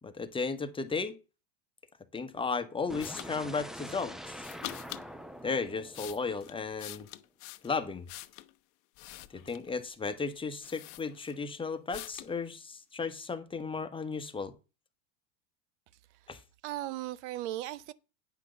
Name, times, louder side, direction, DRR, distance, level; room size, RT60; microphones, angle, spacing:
voice 1, 0.0-1.1 2.1-4.5 5.4-7.1 7.6-8.1 9.3-14.5 16.3-16.4, left 4 dB, 15° left, 1.1 m, -35 dB
sound 1, 2.9-6.9, equal, ahead, 0.6 m, -45 dB
sound 2, 3.0-3.3 4.4-5.1 5.7-8.5 8.9-9.7 10.3-10.4 10.6-11.5 11.9-12.3, left 18 dB, 55° left, 0.9 m, -45 dB
voice 2, 16.6-17.9, right 14 dB, 65° right, 0.7 m, -37 dB
9.3 x 6.0 x 6.7 m
supercardioid pair, 110°, 37 cm